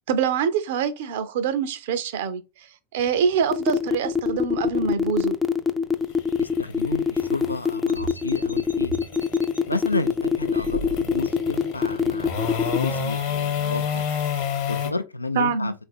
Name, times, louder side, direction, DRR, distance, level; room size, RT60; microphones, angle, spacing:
voice 1, 0.1-2.4 2.9-5.4 15.4-15.7, right 6 dB, 55° right, 0.5 m, -25 dB
sound 1, 3.0-14.9, left 7 dB, 45° left, 1.0 m, -31 dB
sound 2, 3.5-12.8, left 6 dB, 15° left, 0.4 m, -23 dB
voice 2, 6.4-8.9 9.7-14.0 14.7-15.7, left 3 dB, 80° left, 0.3 m, -31 dB
sound 3, 7.9-9.6 10.5-11.4, right 1 dB, 85° right, 0.8 m, -38 dB
4.0 x 2.5 x 4.2 m
figure-of-eight pair, 90°, 0 cm